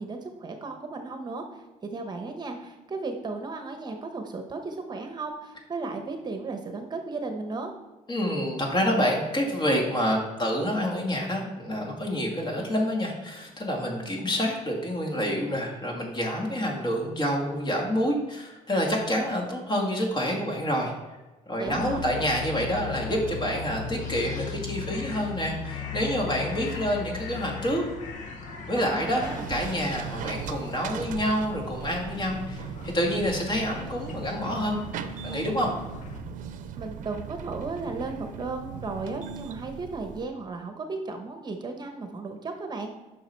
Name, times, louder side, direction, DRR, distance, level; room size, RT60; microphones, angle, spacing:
voice 1, 0.0-7.7 21.6-22.0 28.8-29.5 36.8-42.9, right 3 dB, 30° right, 5 dB, 1.0 m, -35 dB
voice 2, 8.1-20.9 21.5-27.8 28.7-34.8 35.2-35.7, equal, 35° left, 0 dB, 2.2 m, -28 dB
sound 1, 21.7-36.2, left 6 dB, 70° left, 1.1 m, -38 dB
sound 2, 29.2-40.3, right 8 dB, 75° right, 0.7 m, -39 dB
9.1 x 6.0 x 4.5 m, 1.1 s
cardioid pair, 125°, 14 cm